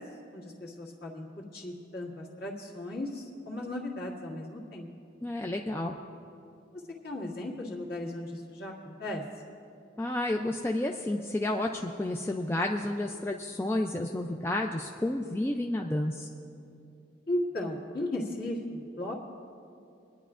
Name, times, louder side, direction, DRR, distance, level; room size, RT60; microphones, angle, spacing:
voice 1, 0.3-4.9 6.7-9.2 17.3-19.1, left 1 dB, 50° left, -3 dB, 1.8 m, -36 dB
voice 2, 5.2-5.9 10.0-16.3, left 1 dB, 10° left, 2 dB, 0.3 m, -31 dB
27.0 x 10.0 x 2.4 m, 2.7 s
head